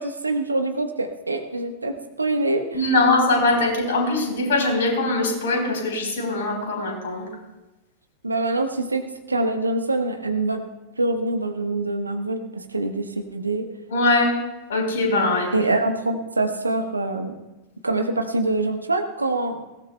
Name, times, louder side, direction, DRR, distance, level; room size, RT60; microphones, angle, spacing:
voice 1, 0.0-2.6 8.2-10.6 11.0-13.7 15.5-17.3 17.8-19.6, right 2 dB, 80° right, 6 dB, 1.2 m, -25 dB
voice 2, 2.7-7.3 13.9-14.4 14.7-15.5, left 2 dB, 60° left, 1 dB, 4.0 m, -21 dB
20.0 x 17.0 x 2.3 m, 1.0 s
figure-of-eight pair, 90°, 0 cm